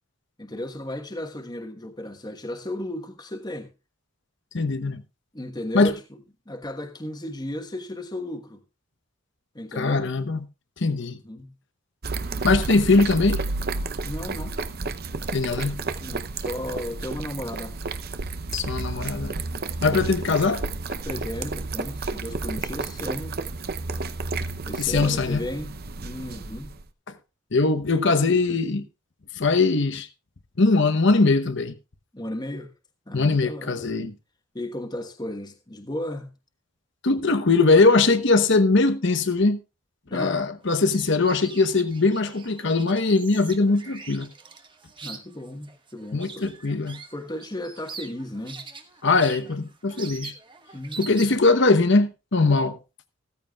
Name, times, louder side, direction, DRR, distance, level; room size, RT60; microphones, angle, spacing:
voice 1, 0.4-3.7 5.3-6.0 6.5-8.6 9.5-10.1 10.8-11.5 14.0-14.6 15.4-17.7 21.0-23.4 24.7-25.8 26.0-26.7 27.9-28.6 32.1-32.7 33.1-33.9 34.5-36.3 40.1-40.5 45.0-46.5 47.1-48.6 50.7-51.4, left 1 dB, 20° left, 1.3 m, -35 dB
voice 2, 4.5-5.0 5.7-5.9 9.7-10.4 10.8-11.2 12.4-13.4 15.3-15.7 18.5-19.3 19.8-20.6 24.8-25.4 27.5-28.8 29.4-30.1 30.6-31.7 33.1-34.1 37.0-39.6 40.1-44.3 46.1-47.0 49.0-50.3 51.0-52.8, left 3 dB, 60° left, 1.0 m, -21 dB
sound 1, 12.0-26.8, right 3 dB, 50° right, 0.7 m, -31 dB
sound 2, 40.7-51.6, right 5 dB, 25° right, 1.1 m, -43 dB
15.0 x 14.0 x 2.4 m
head